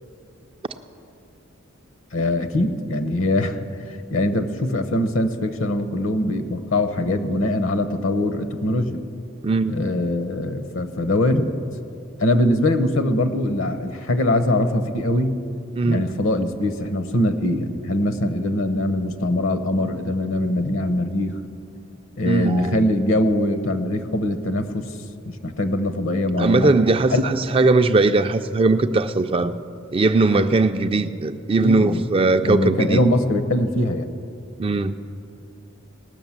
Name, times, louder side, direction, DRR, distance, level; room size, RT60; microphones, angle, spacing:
voice 1, 2.1-3.7 4.1-9.0 9.7-11.5 12.2-15.3 15.8-21.3 22.2-24.9 25.3-26.7 27.1-27.2 30.3-30.5 31.6-32.0 32.4-34.1, left 1 dB, 65° left, 10 dB, 0.9 m, -22 dB
voice 2, 9.4-9.8 15.8-16.1 22.3-22.8 26.4-29.6 29.9-33.0 34.6-34.9, right 3 dB, 25° right, 9 dB, 0.4 m, -19 dB
19.0 x 6.3 x 7.3 m, 2.5 s
head